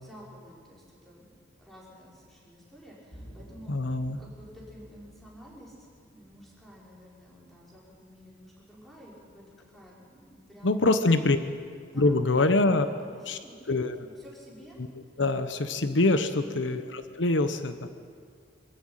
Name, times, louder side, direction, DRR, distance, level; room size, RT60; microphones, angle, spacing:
voice 1, 0.0-11.2 11.9-14.8 16.4-16.8, equal, ahead, -5 dB, 5.7 m, -51 dB
sound 1, 3.1-12.2, equal, 45° left, 7.5 m, -55 dB
voice 2, 3.7-4.2 10.6-11.4 12.0-12.9 13.3-13.4 13.7-13.9 14.8-14.9 15.2-17.9, left 2 dB, 80° left, 10 dB, 1.0 m, -24 dB
24.5 x 14.0 x 9.1 m, 2.1 s
head